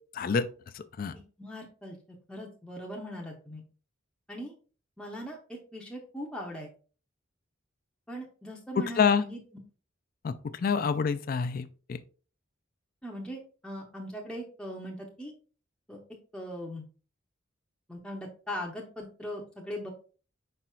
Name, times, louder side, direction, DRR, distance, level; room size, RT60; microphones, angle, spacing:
voice 1, 0.1-0.5 0.7-1.1 8.8-9.2 10.2-12.0, left 6 dB, 45° left, 0.3 m, -27 dB
voice 2, 1.1-3.6 4.3-4.5 5.0-6.7 8.1-9.4 10.8-10.9 13.0-15.3 15.9-16.0 16.3-16.8 17.9-19.9, equal, 5° left, 0.6 m, -40 dB
5.0 x 4.3 x 2.3 m
head